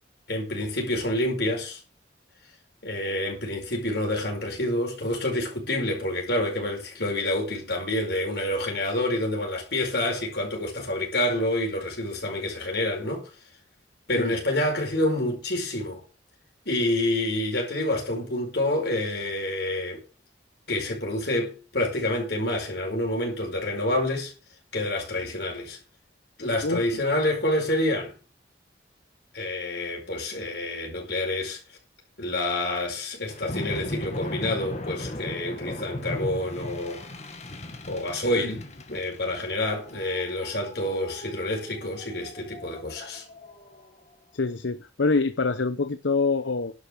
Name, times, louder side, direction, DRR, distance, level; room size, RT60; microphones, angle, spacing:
voice 1, 0.3-1.8 2.8-13.3 14.1-16.0 16.6-20.0 20.7-24.3 24.7-25.8 26.4-28.1 29.3-31.6 32.2-37.0 37.9-43.2, left 1 dB, 60° left, 5.0 m, -28 dB
sound 1, 33.3-43.9, left 1 dB, 35° left, 1.9 m, -38 dB
voice 2, 44.3-46.7, left 3 dB, 85° left, 0.8 m, -25 dB
11.5 x 6.8 x 7.5 m
head